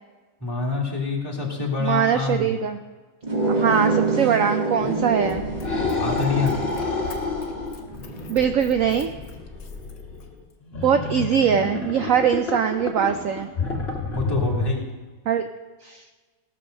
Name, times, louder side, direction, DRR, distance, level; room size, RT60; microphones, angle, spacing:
voice 1, 0.4-2.5 6.0-6.5 14.1-14.9, left 4 dB, 10° left, -3 dB, 2.1 m, -26 dB
voice 2, 1.8-2.8 3.5-5.4 8.3-9.1 10.8-13.5 15.3-15.4 15.8-16.0, right 8 dB, 90° right, 7 dB, 0.7 m, -22 dB
sound 1, 3.2-8.5, right 3 dB, 25° right, 1.4 m, -27 dB
sound 2, 4.8-14.7, left 4 dB, 35° left, 1.9 m, -30 dB
Run, 5.2-10.5 11.1-11.2, left 6 dB, 60° left, 1.6 m, -41 dB
17.5 x 6.3 x 6.3 m, 1.3 s
omnidirectional pair, 2.0 m